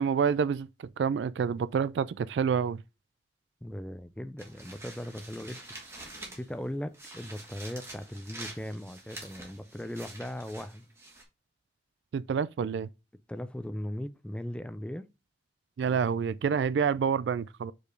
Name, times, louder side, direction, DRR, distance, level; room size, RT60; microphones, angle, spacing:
voice 1, 0.0-2.8 12.1-12.9 15.8-17.7, right 6 dB, 85° right, 0.3 m, -28 dB
voice 2, 3.6-5.6 6.3-10.9 13.3-15.1 15.8-16.0, left 1 dB, 5° left, 0.3 m, -38 dB
sound 1, 4.4-6.6 6.9-11.2, right 2 dB, 15° right, 1.7 m, -46 dB
5.0 x 4.5 x 5.2 m
head